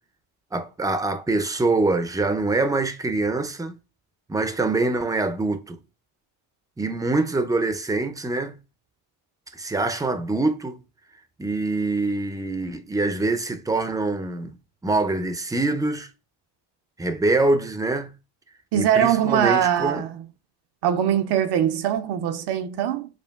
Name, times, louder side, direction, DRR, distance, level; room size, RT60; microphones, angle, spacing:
voice 1, 0.5-3.8 4.3-5.8 6.8-8.6 9.5-10.8 11.4-14.5 14.8-16.1 17.0-18.1 18.7-20.0, right 2 dB, 10° right, 0.5 m, -24 dB
voice 2, 18.7-20.2 20.8-23.1, right 10 dB, 60° right, 0.5 m, -22 dB
6.8 x 2.4 x 2.3 m
supercardioid pair, 75°, 48 cm